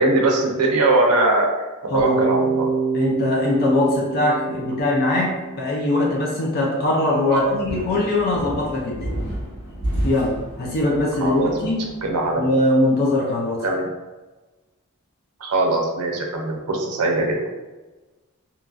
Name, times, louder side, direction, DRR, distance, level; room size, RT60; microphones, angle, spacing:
voice 1, 0.0-1.5 1.9-2.7 7.3-7.6 11.2-11.7 12.0-12.4 13.6-13.9 15.4-17.4, right 2 dB, 90° right, 1 dB, 0.5 m, -21 dB
Bass guitar, 2.0-6.0, right 4 dB, 50° right, 1.0 m, -26 dB
voice 2, 2.9-9.1 10.0-11.8 12.4-13.6, left 2 dB, 45° left, -3 dB, 0.4 m, -21 dB
sound 1, 7.6-12.3, right 1 dB, 70° left, 1.4 m, -31 dB
2.9 x 2.5 x 2.3 m, 1.2 s
head